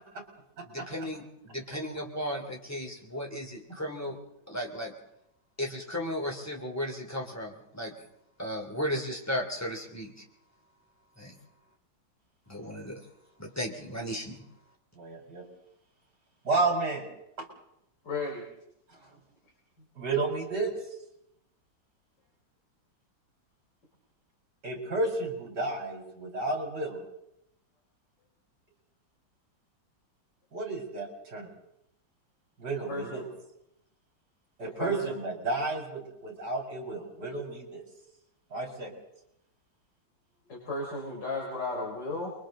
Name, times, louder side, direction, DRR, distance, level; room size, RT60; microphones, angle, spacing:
voice 1, 0.6-4.2 4.5-4.9 5.6-7.9 8.4-10.1 11.2-11.4 12.5-13.0 13.4-14.4, equal, 10° left, 0 dB, 3.0 m, -35 dB
voice 2, 14.9-15.4 16.4-17.0 17.4-17.5 20.0-20.7 24.6-27.0 30.5-31.5 32.6-33.2 34.6-37.8 38.5-38.9, right 3 dB, 55° right, 2 dB, 4.8 m, -32 dB
voice 3, 18.0-18.4 32.9-33.2 34.6-35.2 40.5-42.3, left 2 dB, 60° left, -3 dB, 4.5 m, -34 dB
29.0 x 23.0 x 3.9 m, 0.81 s
omnidirectional pair, 2.1 m